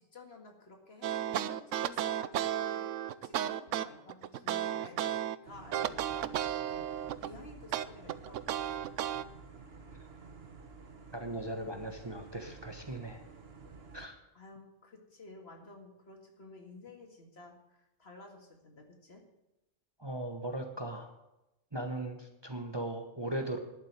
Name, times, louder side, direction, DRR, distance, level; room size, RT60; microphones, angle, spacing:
voice 1, 0.0-2.9 3.2-6.9 7.2-8.9 14.3-19.3, left 2 dB, 55° left, 3 dB, 2.3 m, -52 dB
sound 1, 1.0-5.4 5.7-7.3 7.7-9.2, right 11 dB, 85° right, 1.0 m, -33 dB
sound 2, 5.4-14.1, right 4 dB, 55° right, 1.5 m, -52 dB
voice 2, 11.1-13.2 13.9-14.1 20.0-21.1 21.7-23.6, right 1 dB, 20° right, 5 dB, 1.2 m, -38 dB
11.5 x 7.6 x 9.5 m, 0.94 s
omnidirectional pair, 1.3 m